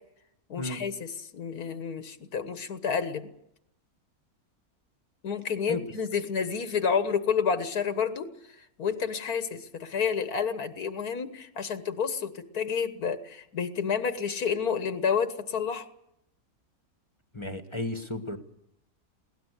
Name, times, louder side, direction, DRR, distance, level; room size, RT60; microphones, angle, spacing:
voice 1, 0.5-3.2 5.2-8.3 8.6-15.9, left 6 dB, 85° left, 10 dB, 1.8 m, -30 dB
voice 2, 17.3-18.4, left 2 dB, 20° left, 8 dB, 1.3 m, -33 dB
22.0 x 17.5 x 8.2 m, 0.80 s
omnidirectional pair, 1.6 m